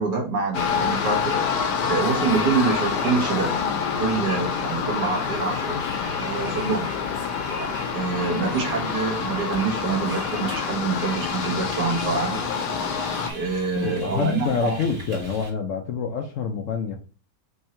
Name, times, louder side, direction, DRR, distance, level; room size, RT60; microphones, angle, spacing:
voice 1, 0.0-1.3 1.9-3.6 4.0-5.8 6.1-6.9 7.9-12.4 13.3-14.8, right 4 dB, 80° right, 2.1 m, -26 dB
sound 1, 0.5-13.3, left 6 dB, 90° left, 1.4 m, -27 dB
Bus, 0.5-15.5, right 2 dB, 45° right, 1.8 m, -40 dB
voice 2, 13.7-17.0, left 6 dB, 65° left, 0.8 m, -26 dB
4.4 x 2.8 x 4.3 m
omnidirectional pair, 1.8 m